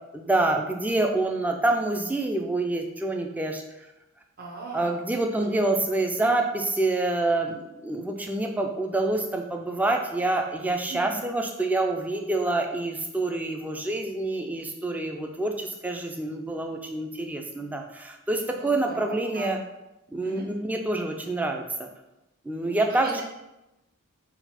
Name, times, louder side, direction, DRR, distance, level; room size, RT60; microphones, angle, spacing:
voice 1, 0.1-3.6 4.7-19.6 20.1-21.9 22.5-23.2, right 2 dB, 5° right, 3 dB, 0.3 m, -27 dB
voice 2, 4.4-4.9 10.9-11.2 18.3-19.6 20.2-20.4 22.6-23.0, right 4 dB, 45° right, -3 dB, 0.8 m, -39 dB
3.9 x 2.3 x 4.2 m, 0.95 s
head